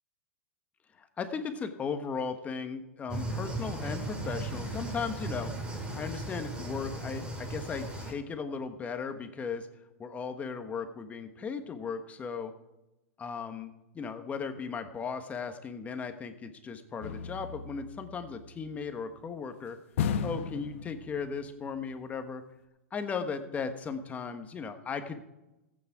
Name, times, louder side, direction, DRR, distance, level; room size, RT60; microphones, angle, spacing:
voice 1, 1.0-5.5 6.0-9.7 10.0-12.5 13.2-19.8 20.2-22.4 22.9-25.2, left 5 dB, 20° left, 7 dB, 1.3 m, -36 dB
sound 1, 3.1-8.1, right 1 dB, 15° right, 2.9 m, -36 dB
sound 2, 17.0-18.7 20.0-21.5 21.8-21.9, left 7 dB, 65° left, 1.1 m, -35 dB
15.0 x 8.8 x 4.7 m, 0.97 s
hypercardioid pair, 125°, 7 cm